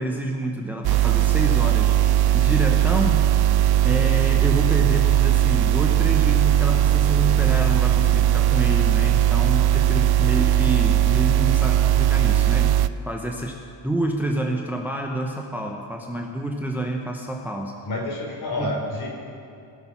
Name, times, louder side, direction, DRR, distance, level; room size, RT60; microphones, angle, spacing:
voice 1, 0.0-1.9 2.3-3.3 3.8-12.7 13.1-13.6 13.8-17.8 18.5-18.8, right 1 dB, 5° right, 1 dB, 1.0 m, -28 dB
sound 1, 0.8-12.9, right 12 dB, 55° right, 0.5 m, -19 dB
voice 2, 17.8-19.1, left 1 dB, 55° left, 0 dB, 3.8 m, -28 dB
19.5 x 6.7 x 5.9 m, 2.5 s
cardioid pair, 110°, 46 cm